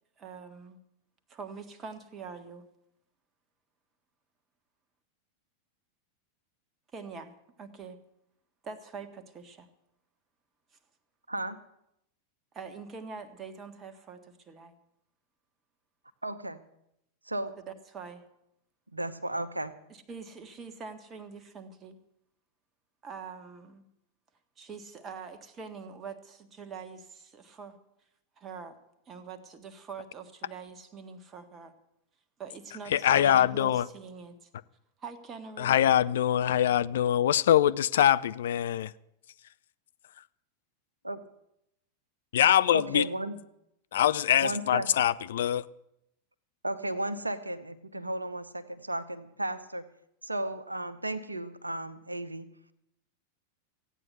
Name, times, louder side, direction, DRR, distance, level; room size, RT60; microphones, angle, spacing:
voice 1, 0.2-0.8 1.3-2.7 6.9-8.0 8.6-9.7 12.5-14.7 17.6-18.2 19.9-22.0 23.0-23.8 24.6-27.8 28.4-28.8 29.1-31.7 32.4-34.5 35.0-35.8, right 5 dB, 25° right, 9 dB, 1.6 m, -44 dB
voice 2, 16.2-16.6 17.2-17.5 18.9-19.7 41.0-41.2 42.7-43.4 44.4-44.9 46.6-49.9 50.2-52.5, right 1 dB, 85° right, 11 dB, 0.9 m, -34 dB
voice 3, 32.9-33.8 35.6-38.9 42.3-43.1 43.9-45.6, left 11 dB, 60° left, 16 dB, 0.4 m, -23 dB
15.5 x 9.1 x 8.1 m, 0.81 s
figure-of-eight pair, 90°, 0 cm